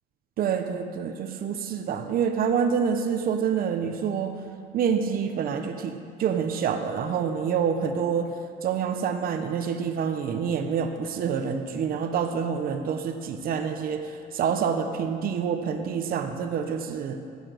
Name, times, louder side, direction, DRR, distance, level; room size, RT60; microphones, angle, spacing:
voice 1, 0.4-4.4 4.7-8.3 8.6-17.2, right 7 dB, 60° right, 6 dB, 1.1 m, -27 dB
14.5 x 8.4 x 6.7 m, 2.5 s
cardioid pair, 110°, 17 cm